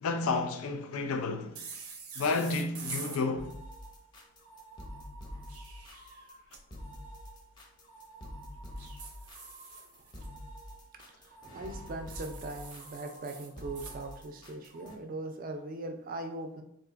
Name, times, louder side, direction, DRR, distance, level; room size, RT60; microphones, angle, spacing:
voice 1, 0.0-1.6 2.2-3.5, left 3 dB, 75° left, 0.4 m, -31 dB
sound 1, 1.5-3.2 5.3-6.6 8.8-10.3 12.1-14.0, right 5 dB, 85° right, 0.6 m, -45 dB
sound 2, 3.4-15.0, equal, 20° left, 0.5 m, -46 dB
voice 2, 11.0-16.6, right 2 dB, 40° right, 0.3 m, -40 dB
3.7 x 2.5 x 2.4 m
head